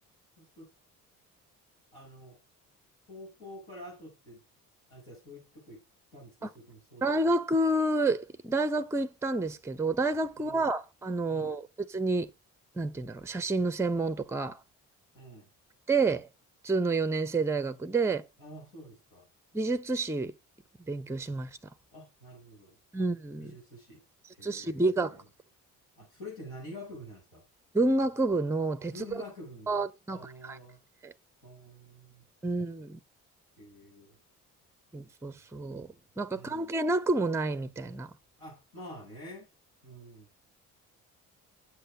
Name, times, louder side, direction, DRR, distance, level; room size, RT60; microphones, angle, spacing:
voice 1, 0.4-0.7 1.9-2.4 3.1-4.4 4.9-5.8 6.1-7.2 10.4-10.6 11.3-11.6 15.1-15.5 18.4-19.3 21.9-23.1 23.4-24.0 24.3-25.2 26.0-27.5 28.9-29.8 30.1-30.8 31.4-32.3 33.6-34.2 36.3-36.7 38.4-39.5 39.8-40.3, left 1 dB, 70° left, 7.7 m, -48 dB
voice 2, 7.0-12.3 12.8-14.6 15.9-16.3 16.6-18.2 19.5-20.3 20.9-21.5 22.9-23.5 24.4-25.2 27.7-28.9 29.7-30.6 31.0-31.1 32.4-33.0 34.9-35.9 36.2-38.1, right 2 dB, 5° right, 0.7 m, -29 dB
8.2 x 7.8 x 6.1 m
figure-of-eight pair, 45°, 44 cm